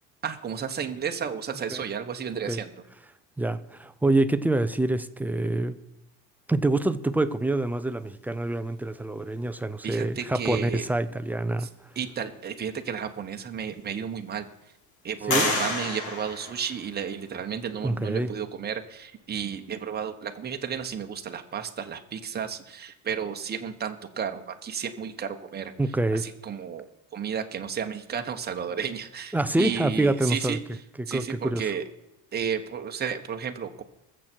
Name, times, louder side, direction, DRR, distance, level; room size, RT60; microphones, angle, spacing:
voice 1, 0.2-2.7 9.8-10.8 11.6-11.7 11.9-14.5 15.0-25.7 26.1-30.6 31.1-31.8 32.3-33.8, right 7 dB, 25° right, 5 dB, 1.2 m, -32 dB
voice 2, 3.4-5.8 6.5-11.7 15.3-15.5 17.8-18.3 25.8-26.3 29.3-30.6 31.0-31.7, right 2 dB, 5° right, 11 dB, 0.5 m, -26 dB
sound 1, 13.0-13.1 13.7-14.4 15.3-17.2, left 3 dB, 50° left, 3.1 m, -30 dB
20.5 x 7.5 x 4.5 m, 0.89 s
cardioid pair, 135°, 39 cm